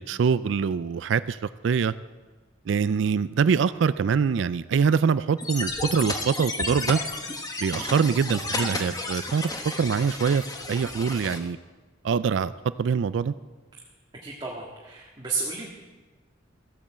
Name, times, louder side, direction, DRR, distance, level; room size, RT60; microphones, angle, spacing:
voice 1, 0.0-1.4 1.6-1.9 2.7-7.0 7.6-9.5 9.8-11.6 12.0-12.5 12.8-13.3, right 6 dB, 70° right, 16 dB, 0.4 m, -24 dB
sound 1, 5.4-11.4, left 2 dB, 20° left, 1.2 m, -32 dB
voice 2, 14.2-15.7, right 4 dB, 25° right, -3 dB, 1.8 m, -32 dB
14.5 x 8.6 x 7.4 m, 1.3 s
head